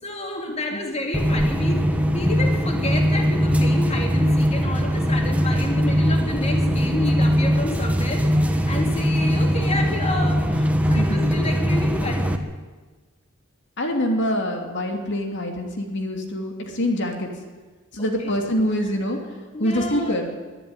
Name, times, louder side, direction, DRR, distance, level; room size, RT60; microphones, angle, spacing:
voice 1, 0.0-1.9 2.1-12.4 18.0-18.3 19.5-20.2, left 2 dB, 30° left, 3 dB, 2.7 m, -30 dB
sound 1, 1.1-12.4, equal, 5° right, 1.4 m, -21 dB
voice 2, 10.8-11.3 13.8-17.3 17.9-19.2 19.6-20.3, equal, 60° left, 3 dB, 2.8 m, -25 dB
23.0 x 12.0 x 9.8 m, 1.3 s
head